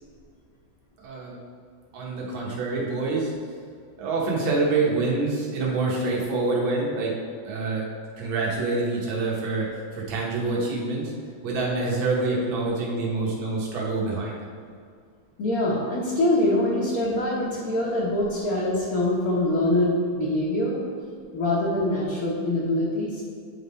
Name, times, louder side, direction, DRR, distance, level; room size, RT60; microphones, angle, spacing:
voice 1, 1.0-1.4 1.9-3.3 4.0-7.1 7.4-7.9 8.2-9.7 9.9-11.1 11.4-14.5, right 3 dB, 80° right, -3 dB, 1.9 m, -26 dB
voice 2, 15.4-20.8 21.3-23.2, left 1 dB, 55° left, -6 dB, 1.3 m, -24 dB
9.1 x 3.6 x 4.2 m, 2.2 s
omnidirectional pair, 2.1 m